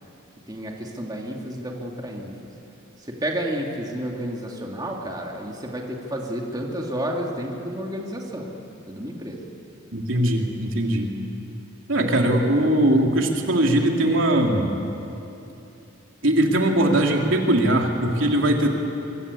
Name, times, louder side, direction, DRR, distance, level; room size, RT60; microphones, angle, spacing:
voice 1, 0.5-2.5 3.0-8.5 8.9-9.4, equal, 20° right, -1 dB, 2.6 m, -31 dB
voice 2, 9.9-11.1 11.9-14.7 16.2-18.7, right 1 dB, 70° right, 1 dB, 3.1 m, -20 dB
26.0 x 24.0 x 8.6 m, 2.9 s
head